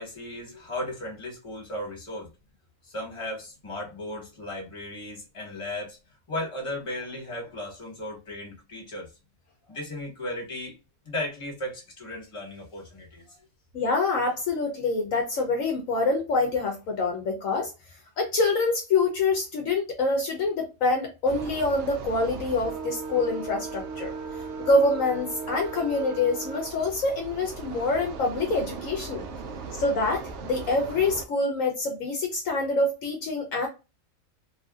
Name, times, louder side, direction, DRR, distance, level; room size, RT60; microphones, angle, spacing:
voice 1, 0.0-2.3 2.8-6.0 6.3-9.1 9.7-10.7 11.0-13.4, left 1 dB, 25° left, 1.3 m, -36 dB
voice 2, 13.7-17.7 18.2-24.1 24.6-29.2 29.8-33.7, left 3 dB, 70° left, 1.1 m, -26 dB
sound 1, 21.2-31.2, right 5 dB, 65° right, 0.7 m, -37 dB
3.0 x 2.5 x 2.4 m
omnidirectional pair, 1.5 m